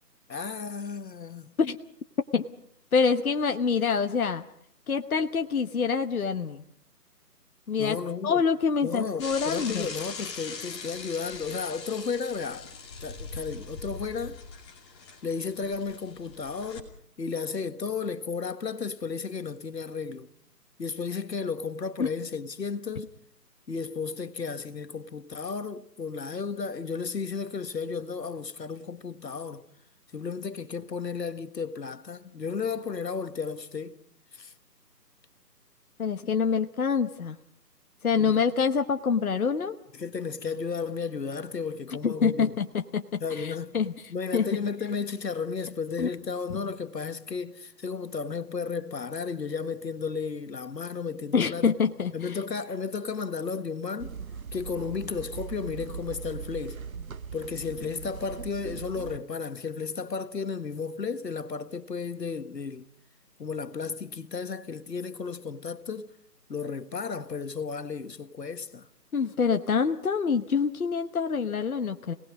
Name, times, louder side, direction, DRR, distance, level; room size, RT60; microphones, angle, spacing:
voice 1, 0.3-1.5 7.8-8.4 8.8-12.7 13.0-14.4 15.2-16.9 17.2-20.3 20.8-23.1 23.7-29.7 30.1-34.0 34.3-34.5 38.2-38.4 39.9-42.5 43.2-43.7 44.1-51.7 52.1-54.1 54.5-56.8 57.3-62.8 63.4-66.1 66.5-68.9, left 5 dB, 80° left, 1.7 m, -33 dB
voice 2, 2.9-4.4 4.9-6.6 7.7-8.0 8.2-9.9 22.0-22.1 36.0-37.4 38.0-39.8 42.0-43.9 44.3-44.6 46.0-46.1 51.3-52.1 69.1-72.1, left 6 dB, 60° left, 1.2 m, -26 dB
Bicycle / Mechanisms, 9.2-16.8, left 4 dB, 15° left, 2.6 m, -41 dB
sound 1, 54.0-59.2, right 6 dB, 60° right, 0.8 m, -40 dB
29.0 x 19.0 x 5.3 m
figure-of-eight pair, 165°, 49 cm